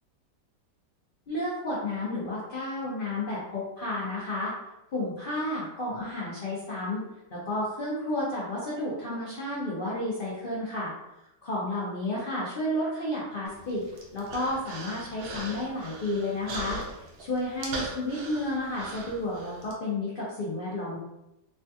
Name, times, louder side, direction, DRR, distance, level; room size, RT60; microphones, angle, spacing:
voice 1, 1.3-4.5 4.9-7.0 7.3-10.9 11.4-13.8 14.1-21.0, left 1 dB, 75° left, -7 dB, 0.4 m, -31 dB
Human voice, 13.5-19.7, right 2 dB, 70° right, 1.2 m, -40 dB
3.3 x 2.3 x 2.7 m, 0.91 s
omnidirectional pair, 1.9 m